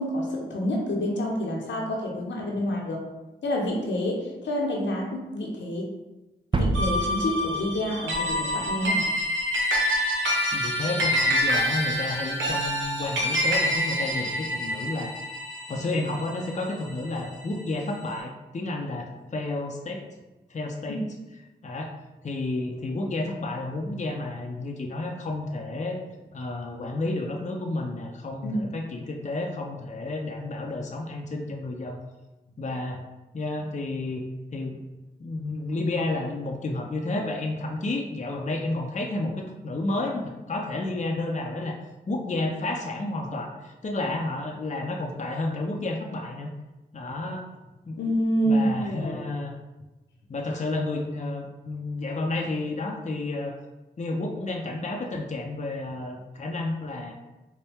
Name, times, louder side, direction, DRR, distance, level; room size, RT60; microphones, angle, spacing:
voice 1, 0.0-3.0 3.4-5.9 6.6-9.1 20.9-21.0 28.4-28.6 48.0-49.2, equal, 80° left, -1 dB, 0.8 m, -28 dB
sound 1, 6.5-8.6, right 2 dB, 25° right, 0.4 m, -29 dB
sound 2, 6.7-17.4, equal, 85° right, 0.7 m, -27 dB
voice 2, 10.5-15.1 15.7-20.0 20.5-21.0 21.6-21.9 22.2-26.0 26.3-32.0 32.6-33.0 33.3-34.2 34.5-34.8 35.2-41.8 42.1-46.5 46.9-47.4 47.9-48.0 48.4-49.5 50.3-53.6 54.0-57.1, left 2 dB, 40° left, 1 dB, 0.6 m, -31 dB
4.2 x 2.2 x 3.4 m, 1.1 s
cardioid pair, 40°, 19 cm